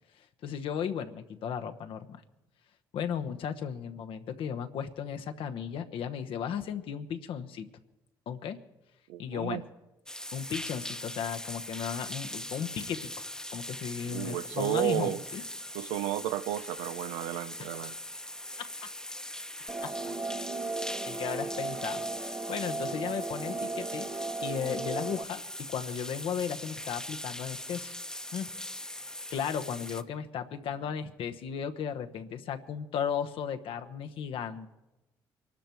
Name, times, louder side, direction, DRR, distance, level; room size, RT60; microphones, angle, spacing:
voice 1, 0.4-2.2 2.9-7.7 8.3-8.6 9.2-9.6 10.3-13.1 13.5-15.4 17.6-17.7 18.6-18.9 19.8-20.0 21.0-24.1 24.4-27.9 28.3-28.5 29.3-34.7, left 8 dB, 70° left, 1.1 m, -35 dB
voice 2, 9.1-9.6 14.0-15.2 15.7-18.0, right 13 dB, 90° right, 0.5 m, -32 dB
sound 1, 10.1-30.0, left 1 dB, 5° left, 0.9 m, -41 dB
sound 2, 19.7-25.2, right 3 dB, 25° right, 0.7 m, -36 dB
24.0 x 12.5 x 4.6 m
supercardioid pair, 60°, 9 cm